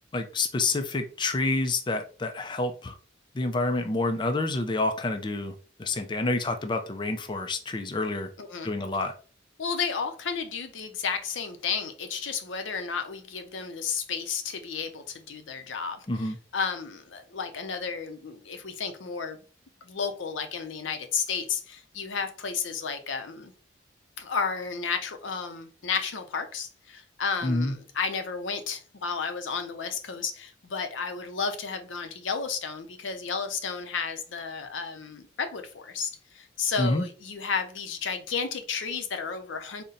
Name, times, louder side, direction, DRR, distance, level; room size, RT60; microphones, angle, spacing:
voice 1, 0.1-2.9 3.3-8.3 8.6-9.1 16.1-16.4 27.4-27.7 36.8-37.0, left 2 dB, 25° left, 0.4 m, -28 dB
voice 2, 8.4-8.7 9.6-19.4 19.8-23.5 24.2-39.8, left 5 dB, 85° left, 0.6 m, -32 dB
4.1 x 2.1 x 3.8 m
head